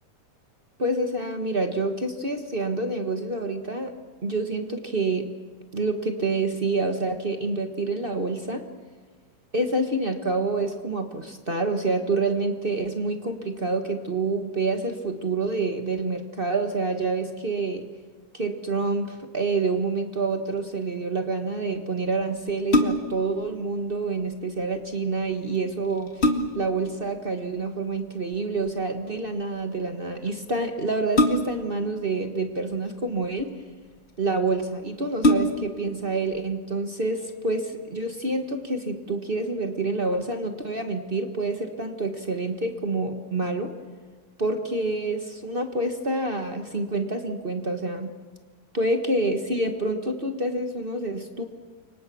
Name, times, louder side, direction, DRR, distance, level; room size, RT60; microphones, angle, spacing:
voice 1, 0.8-3.9 4.2-5.3 5.7-8.6 9.5-17.8 18.3-26.2 26.5-33.5 34.2-43.7 44.4-48.1 48.7-51.4, right 3 dB, 45° right, 5 dB, 0.7 m, -27 dB
sound 1, 22.5-23.3 25.3-25.4 25.8-26.8 28.3-28.7 31.1-31.8 32.7-33.4 34.2-34.3 34.6-34.7 35.2-35.8 36.3-36.4, left 1 dB, 25° left, 1.5 m, -23 dB
29.5 x 25.0 x 6.2 m, 1.5 s
omnidirectional pair, 3.4 m